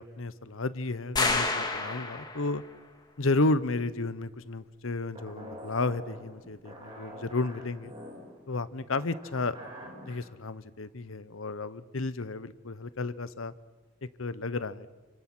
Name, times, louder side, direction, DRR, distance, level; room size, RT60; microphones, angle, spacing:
voice 1, 0.0-2.6 3.2-7.9 8.5-13.5 14.2-14.9, left 3 dB, 85° left, 14 dB, 1.0 m, -32 dB
sound 1, 1.2-2.6, left 3 dB, 20° left, 1.9 m, -29 dB
sound 2, 5.2-10.3, equal, 25° right, 4.5 m, -46 dB
29.0 x 25.5 x 6.3 m, 1.3 s
head